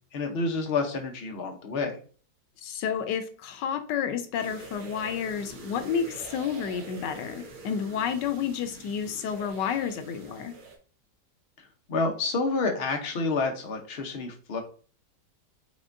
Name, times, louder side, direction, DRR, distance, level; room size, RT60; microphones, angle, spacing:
voice 1, 0.1-2.0 11.9-14.6, left 3 dB, 45° left, 3 dB, 0.9 m, -29 dB
voice 2, 2.6-10.5, left 7 dB, 90° left, 8 dB, 1.3 m, -30 dB
sound 1, 4.4-10.8, right 3 dB, 60° right, 1.3 m, -45 dB
5.2 x 3.6 x 2.6 m, 0.41 s
omnidirectional pair, 1.9 m